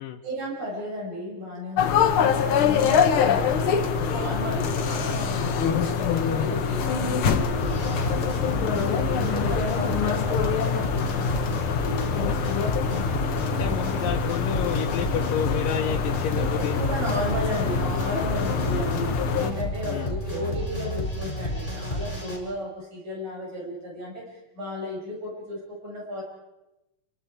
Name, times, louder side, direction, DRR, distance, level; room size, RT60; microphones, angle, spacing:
voice 1, 0.2-13.3 13.5-13.8 16.3-26.2, left 1 dB, 60° right, -3 dB, 8.3 m, -34 dB
sound 1, 1.8-19.5, left 6 dB, 60° left, 1.4 m, -25 dB
sound 2, 7.6-22.4, left 1 dB, 15° left, 6.0 m, -31 dB
voice 2, 13.5-16.8 19.9-20.1, left 10 dB, 85° left, 1 dB, 2.6 m, -30 dB
28.5 x 24.5 x 4.8 m, 0.96 s
omnidirectional pair, 3.8 m